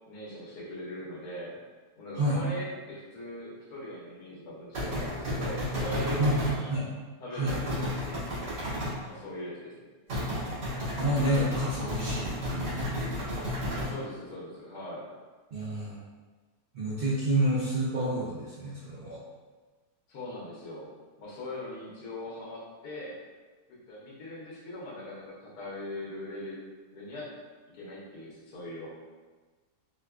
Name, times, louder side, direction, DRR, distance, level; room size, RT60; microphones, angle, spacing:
voice 1, 0.1-1.6 2.0-6.7 7.2-8.6 9.0-9.8 13.7-15.0 20.1-20.9 21.2-23.2 23.7-26.6 26.9-27.3 27.7-28.9, left 1 dB, 75° left, -6 dB, 1.4 m, -40 dB
sound 1, 4.7-6.6 7.5-9.0 10.1-13.9, left 1 dB, 85° right, 2.2 m, -32 dB
voice 2, 11.0-13.0 15.5-16.0 16.7-19.2, right 1 dB, 60° right, -9 dB, 0.6 m, -29 dB
4.4 x 2.2 x 2.3 m, 1.3 s
omnidirectional pair, 1.7 m